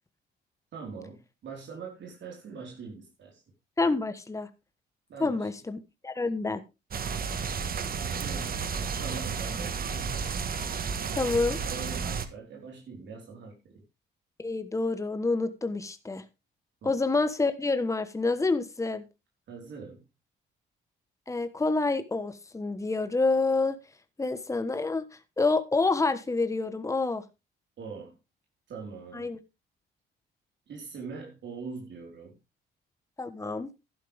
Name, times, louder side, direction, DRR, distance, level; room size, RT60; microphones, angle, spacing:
voice 1, 0.7-3.4 5.1-5.5 8.0-8.6 9.0-10.2 11.6-13.8 16.8-16.9 19.5-20.0 27.8-28.1 28.7-29.3 30.7-32.3, right 5 dB, 65° right, 4.4 m, -42 dB
voice 2, 3.8-4.5 5.2-5.8 6.0-6.6 11.2-11.6 14.4-16.2 16.8-19.0 21.3-23.8 24.2-25.1 25.4-27.2 29.1-29.4 33.2-33.7, left 3 dB, 15° left, 1.2 m, -27 dB
sound 1, 6.9-12.3, right 6 dB, 50° right, 1.5 m, -32 dB
12.0 x 11.0 x 3.5 m
cardioid pair, 90°, 20 cm